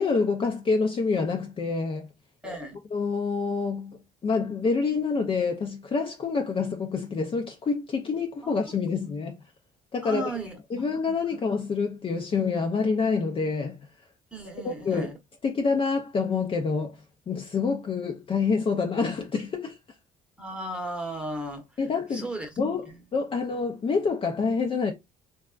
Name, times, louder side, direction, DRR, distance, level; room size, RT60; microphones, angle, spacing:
voice 1, 0.0-2.1 2.9-9.4 9.9-10.3 10.7-13.8 14.6-15.1 15.4-17.0 17.3-19.8 21.8-24.9, left 4 dB, 30° left, 0.6 m, -27 dB
voice 2, 2.4-2.8 8.4-8.6 10.0-10.6 10.9-11.3 14.3-15.1 20.4-21.6 22.1-22.5, right 1 dB, 5° right, 1.0 m, -35 dB
3.4 x 2.3 x 2.3 m
cardioid pair, 110°, 17 cm